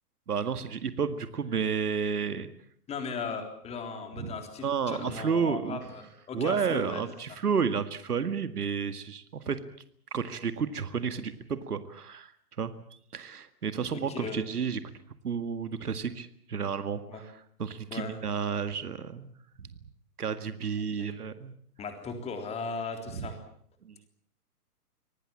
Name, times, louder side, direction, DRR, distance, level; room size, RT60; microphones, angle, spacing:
voice 1, 0.3-2.5 4.2-4.3 4.6-5.8 6.3-9.6 10.1-12.3 12.6-14.8 15.2-19.3 19.6-19.7 20.2-21.5 23.1-23.3 23.8-24.0, right 6 dB, 70° right, 12 dB, 2.1 m, -31 dB
voice 2, 2.9-7.0 14.1-14.4 17.1-17.2 17.9-18.2 21.0-21.1 21.8-23.4, left 4 dB, 15° left, 6 dB, 3.6 m, -37 dB
25.5 x 18.5 x 8.8 m, 0.63 s
figure-of-eight pair, 135°, 47 cm